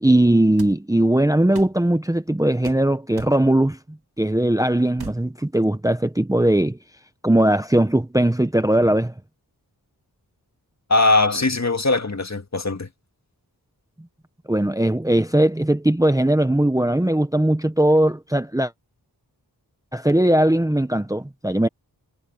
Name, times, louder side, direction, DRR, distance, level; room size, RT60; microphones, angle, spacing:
voice 1, 0.0-3.8 4.2-6.8 7.2-9.1 14.5-18.7 19.9-21.7, right 1 dB, 10° right, 0.8 m, -19 dB
sound 1, 0.6-0.8 1.5-1.8 2.6-2.8 3.2-3.4 5.0-5.2, right 4 dB, 70° right, 2.1 m, -38 dB
voice 2, 10.9-12.9, left 2 dB, 45° left, 1.8 m, -20 dB
wide cardioid pair, 70°, 39 cm